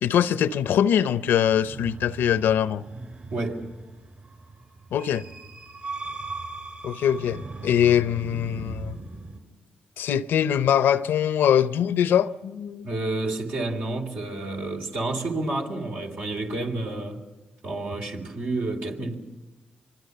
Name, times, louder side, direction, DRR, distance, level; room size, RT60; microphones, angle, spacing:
voice 1, 0.0-2.8 4.9-5.2 6.8-9.0 10.0-12.9, left 9 dB, 85° left, 0.7 m, -22 dB
sound 1, 1.5-9.4, right 3 dB, 60° right, 6.2 m, -39 dB
voice 2, 3.3-3.7 12.8-17.2 17.6-19.2, right 2 dB, 75° right, 3.5 m, -30 dB
25.5 x 24.0 x 6.9 m
supercardioid pair, 50°, 3 cm